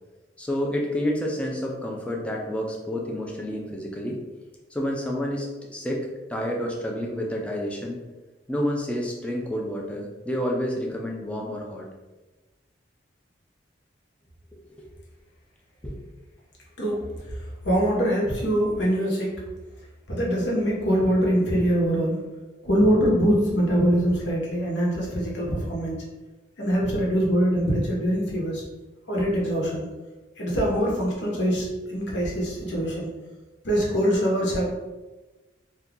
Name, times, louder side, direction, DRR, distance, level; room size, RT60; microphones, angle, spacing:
voice 1, 0.4-4.2 4.7-8.0 8.5-11.9 14.5-14.8 15.8-16.0, equal, 5° left, -1 dB, 0.4 m, -29 dB
voice 2, 17.6-19.4 20.1-22.2 22.6-26.0 26.6-28.6 29.1-29.9 30.4-33.1 33.6-34.7, equal, 75° left, -3 dB, 0.9 m, -23 dB
2.8 x 2.3 x 3.6 m, 1.1 s
head